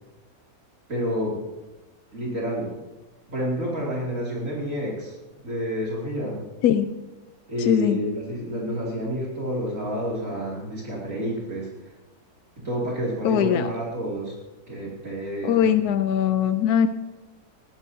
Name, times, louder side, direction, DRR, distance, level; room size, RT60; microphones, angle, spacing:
voice 1, 0.9-1.4 2.1-2.8 3.3-5.2 5.4-6.4 7.5-11.9 12.6-14.4 14.7-15.7, equal, 55° right, -5 dB, 3.1 m, -29 dB
voice 2, 7.6-8.0 13.2-13.7 15.4-16.9, left 9 dB, 80° left, 9 dB, 1.2 m, -21 dB
21.0 x 16.0 x 2.8 m, 1.1 s
omnidirectional pair, 1.6 m